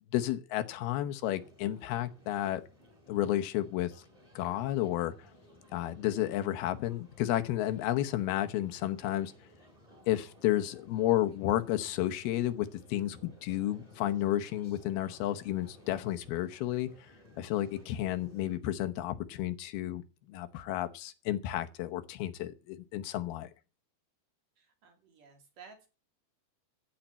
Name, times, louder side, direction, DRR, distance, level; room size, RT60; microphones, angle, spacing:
voice 1, 0.1-2.6 3.1-3.9 4.4-5.1 5.7-9.3 10.1-16.9 17.4-20.0 20.3-23.5, left 13 dB, 90° left, 3.0 m, -32 dB
sound 1, 1.2-18.6, left 1 dB, 10° right, 2.9 m, -58 dB
voice 2, 24.6-25.9, right 5 dB, 60° right, 4.5 m, -55 dB
15.0 x 5.8 x 9.0 m
omnidirectional pair, 4.3 m